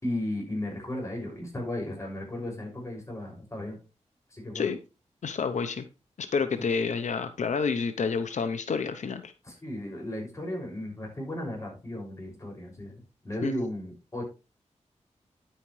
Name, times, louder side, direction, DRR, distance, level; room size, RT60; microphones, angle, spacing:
voice 1, 0.0-3.8 4.3-4.7 6.5-6.6 9.4-14.3, left 1 dB, 25° left, -1 dB, 6.2 m, -35 dB
voice 2, 5.2-5.9 6.2-9.3 13.4-13.5, left 5 dB, 85° left, 9 dB, 0.8 m, -29 dB
10.0 x 8.9 x 3.2 m, 0.29 s
wide cardioid pair, 85°, 12 cm